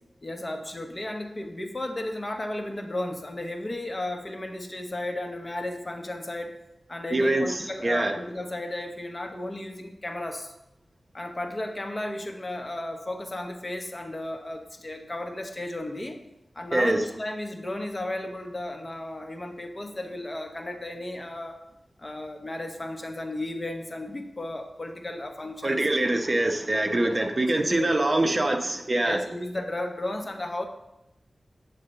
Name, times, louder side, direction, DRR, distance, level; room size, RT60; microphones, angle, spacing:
voice 1, 0.2-6.5 6.9-10.5 11.1-16.2 16.5-21.6 22.0-25.8 26.9-28.0 29.0-30.6, left 1 dB, 35° left, 4 dB, 1.0 m, -34 dB
voice 2, 7.1-7.4 7.8-8.1 16.7-17.0 25.6-29.2, right 2 dB, 40° right, 4 dB, 0.8 m, -24 dB
8.5 x 3.8 x 6.7 m, 0.85 s
wide cardioid pair, 75°, 0 cm